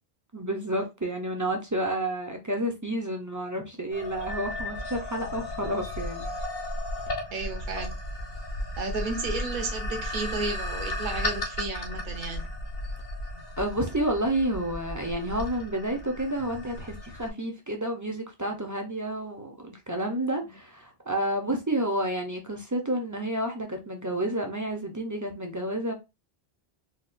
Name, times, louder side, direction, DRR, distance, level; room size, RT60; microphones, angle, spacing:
voice 1, 0.3-6.3 13.6-25.9, right 1 dB, 25° right, 0.5 m, -30 dB
sound 1, 3.9-17.3, left 1 dB, 65° left, 1.1 m, -35 dB
voice 2, 7.3-7.9 8.8-12.5, right 3 dB, 55° right, 0.9 m, -33 dB
4.0 x 2.4 x 2.5 m
omnidirectional pair, 1.0 m